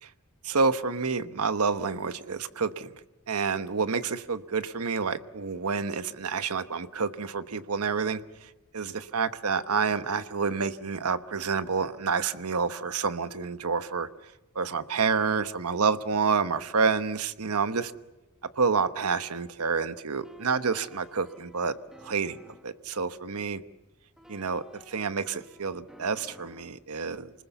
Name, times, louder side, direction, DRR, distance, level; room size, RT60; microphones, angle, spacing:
voice 1, 0.4-2.9 3.3-17.9 18.5-23.6 24.3-27.3, right 5 dB, 90° right, 12 dB, 1.1 m, -29 dB
sound 1, 20.2-22.8 24.2-26.8, left 1 dB, ahead, 1.6 m, -54 dB
29.0 x 20.5 x 7.0 m, 1.1 s
head